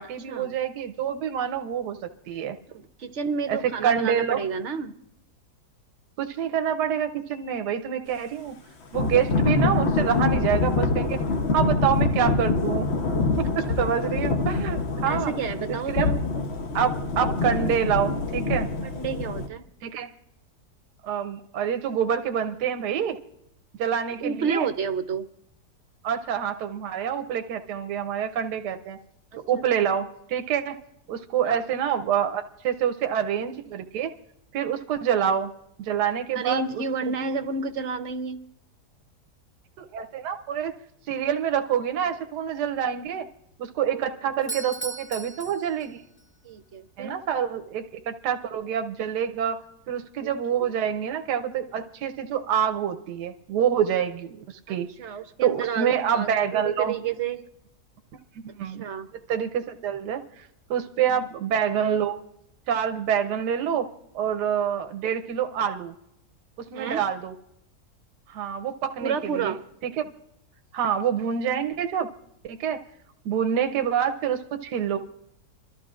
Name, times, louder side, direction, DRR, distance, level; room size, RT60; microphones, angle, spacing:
voice 1, 0.0-2.6 3.5-4.4 6.2-8.6 8.9-11.2 11.5-12.9 13.4-15.3 15.9-16.1 16.7-18.7 19.8-20.1 21.0-23.2 23.8-24.7 26.0-29.0 29.4-30.8 31.1-34.1 34.5-35.5 35.8-36.6 39.8-40.7 41.1-43.3 43.6-46.0 47.0-49.6 49.9-54.4 54.7-54.9 55.4-56.9 58.4-58.8 59.3-60.2 60.7-62.2 62.7-63.9 64.1-65.9 66.6-67.3 68.3-69.5 70.0-70.1 70.7-72.1 72.4-72.8 73.2-75.0, right 8 dB, 85° right, 7 dB, 1.3 m, -26 dB
voice 2, 2.7-4.9 15.1-16.4 18.8-19.6 24.2-25.2 29.3-29.6 31.4-31.6 36.3-38.4 43.9-44.1 44.4-44.5 46.4-47.2 50.2-50.3 54.7-57.4 58.6-59.1 61.1-61.3 66.7-67.0 69.0-69.6, right 6 dB, 55° right, 8 dB, 0.8 m, -30 dB
Thunder / Rain, 8.9-19.5, left 3 dB, 50° left, 1.0 m, -25 dB
Doorbell, 44.4-46.3, right 3 dB, 15° left, 0.4 m, -37 dB
27.0 x 12.5 x 2.4 m, 0.79 s
omnidirectional pair, 1.8 m